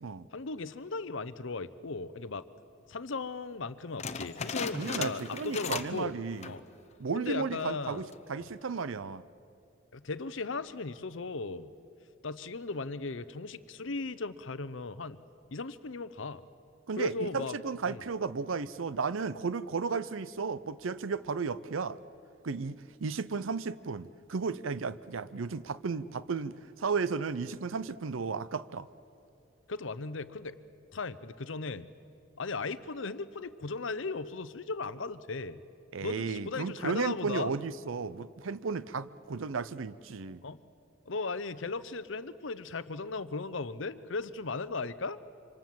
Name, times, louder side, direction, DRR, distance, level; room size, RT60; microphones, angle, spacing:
voice 1, 0.3-2.4 2.9-6.1 6.5-6.6 7.1-8.0 9.9-11.7 12.2-15.2 15.5-16.4 17.0-17.6 17.9-18.0 29.7-30.6 30.9-31.9 32.4-35.6 36.0-37.5 40.4-40.6 41.1-45.2, left 3 dB, 70° left, 14 dB, 0.8 m, -37 dB
sound 1, 4.0-6.1 6.3-6.7 7.2-7.3 7.9-8.3, left 5 dB, 35° left, 0.9 m, -37 dB
voice 2, 4.7-6.5 7.0-9.2 16.9-22.0 22.4-28.9 35.9-40.4, right 5 dB, 85° right, 16 dB, 0.6 m, -34 dB
26.5 x 25.5 x 7.7 m, 2.7 s
head